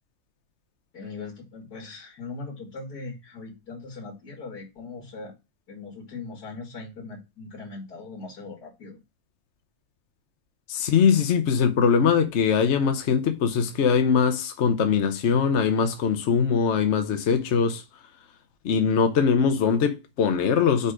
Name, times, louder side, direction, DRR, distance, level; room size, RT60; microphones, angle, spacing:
voice 1, 0.9-5.3 5.7-9.0, left 3 dB, 75° left, 2.4 m, -40 dB
voice 2, 10.7-17.8 18.6-20.9, left 6 dB, 55° left, 0.9 m, -22 dB
4.9 x 4.5 x 4.9 m
omnidirectional pair, 1.7 m